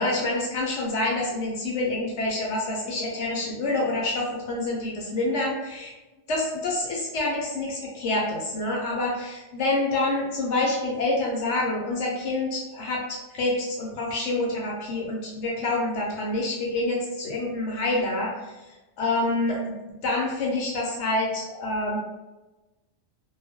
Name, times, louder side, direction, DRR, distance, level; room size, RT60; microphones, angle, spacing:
voice 1, 0.0-5.9 6.3-13.0 13.3-18.5 19.0-19.8 20.0-22.0, left 2 dB, 65° left, -3 dB, 0.8 m, -27 dB
2.3 x 2.1 x 2.6 m, 1.1 s
omnidirectional pair, 1.4 m